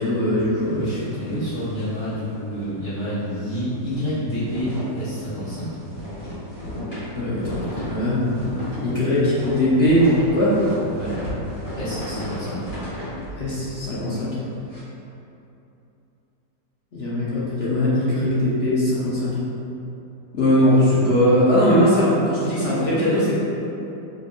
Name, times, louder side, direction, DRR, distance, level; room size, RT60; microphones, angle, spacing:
voice 1, 0.0-1.0 7.1-8.2 8.8-10.0 10.3-10.6 13.4-14.4 16.9-19.4 20.3-23.3, left 1 dB, 50° left, -9 dB, 0.7 m, -20 dB
sound 1, 0.6-2.8 3.2-3.3 3.6-14.8, equal, 85° left, 2.3 m, -34 dB
voice 2, 0.6-5.7 10.9-11.1 11.7-12.6 22.4-22.8, equal, 35° left, -14 dB, 1.5 m, -29 dB
4.3 x 3.3 x 2.5 m, 2.9 s
omnidirectional pair, 1.9 m